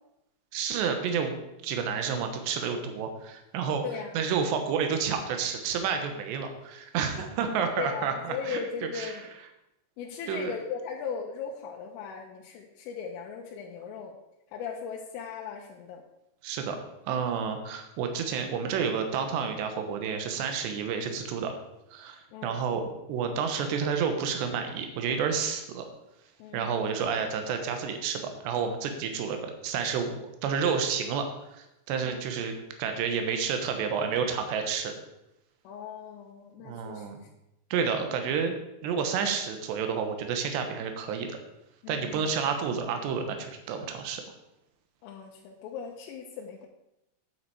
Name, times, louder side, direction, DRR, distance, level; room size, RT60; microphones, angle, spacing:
voice 1, 0.5-1.4 1.6-3.8 4.1-8.6 8.9-9.1 10.3-10.6 16.4-16.8 17.1-21.5 21.9-25.9 26.5-30.1 30.4-32.5 32.8-34.9 36.6-37.2 37.7-38.6 38.8-41.4 41.9-44.2, right 6 dB, 70° right, 6 dB, 3.0 m, -30 dB
voice 2, 3.8-4.2 7.8-9.3 10.0-14.1 14.5-16.0 22.3-22.7 26.4-26.8 32.0-32.2 35.6-37.1 41.8-42.2 45.0-46.7, left 6 dB, 85° left, -1 dB, 3.4 m, -38 dB
9.0 x 8.9 x 4.9 m, 0.88 s
omnidirectional pair, 5.9 m